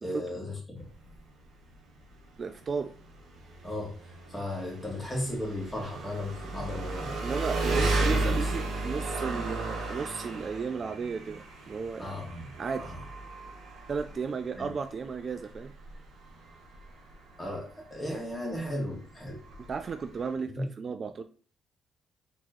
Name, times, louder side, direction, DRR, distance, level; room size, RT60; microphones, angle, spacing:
voice 1, 0.0-0.8 3.6-3.9 4.3-7.1 7.7-7.9 8.2-8.4 12.0-12.4 12.8-12.9 14.6-14.7 17.4-19.4 20.5-20.6, left 1 dB, 15° left, -2 dB, 2.1 m, -35 dB
Engine, 0.8-20.4, right 2 dB, 75° right, 1.3 m, -35 dB
voice 2, 2.4-2.9 7.2-12.2 12.6-12.9 13.9-15.7 19.6-21.2, right 5 dB, 45° right, 9 dB, 0.3 m, -34 dB
4.6 x 3.6 x 3.1 m, 0.40 s
cardioid pair, 90°, 0 cm